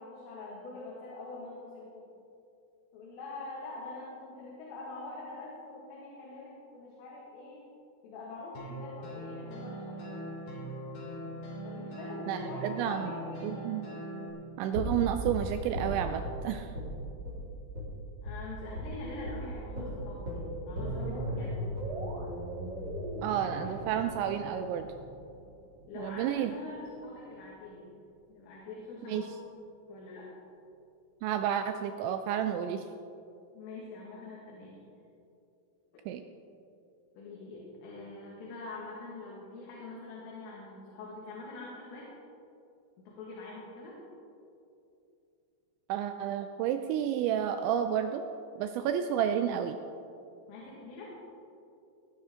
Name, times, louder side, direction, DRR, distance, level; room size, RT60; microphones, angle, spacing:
voice 1, 0.0-2.1 2.9-7.7 8.0-10.2 11.6-13.8 18.2-21.6 25.9-27.9 28.3-29.3 29.9-30.3 33.5-34.8 37.2-42.1 43.0-44.0 50.5-51.1, left 2 dB, 90° left, -5 dB, 4.4 m, -44 dB
sound 1, 8.5-14.3, right 1 dB, 60° left, 4.9 m, -41 dB
voice 2, 12.3-13.1 13.4-13.9 14.6-16.7 23.2-24.9 26.0-26.5 29.1-29.3 31.2-32.8 36.1-36.2 45.9-48.2 48.6-49.8, right 9 dB, 85° right, 7 dB, 2.7 m, -31 dB
sound 2, 14.7-16.4 16.7-16.9 17.2-17.4 17.7-17.9 18.2-18.4 18.7-18.9 19.2-19.4 19.7-25.7 26.0-26.1, equal, 30° right, 4.5 m, -37 dB
19.0 x 10.5 x 3.7 m, 2.6 s
omnidirectional pair, 5.7 m